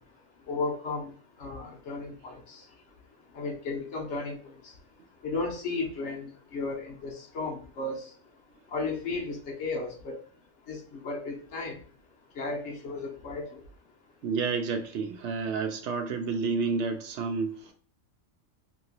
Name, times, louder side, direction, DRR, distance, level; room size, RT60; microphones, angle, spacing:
voice 1, 0.5-1.1 1.4-2.3 3.3-4.4 5.2-8.0 8.7-10.2 10.7-11.8 12.4-13.6, left 3 dB, 65° left, 1 dB, 1.1 m, -34 dB
voice 2, 14.2-17.7, right 4 dB, 70° right, 5 dB, 0.8 m, -30 dB
2.9 x 2.8 x 2.8 m, 0.44 s
omnidirectional pair, 1.3 m